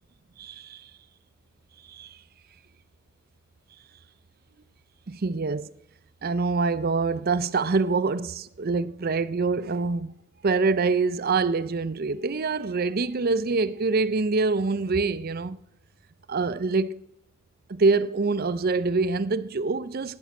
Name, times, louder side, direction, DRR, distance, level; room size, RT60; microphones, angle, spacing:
voice 1, 0.4-0.9 1.9-2.2 5.1-5.7 6.2-10.1 10.4-15.6 16.3-17.0 17.7-20.2, right 4 dB, 45° right, 0.5 m, -25 dB
12.0 x 10.5 x 9.4 m
head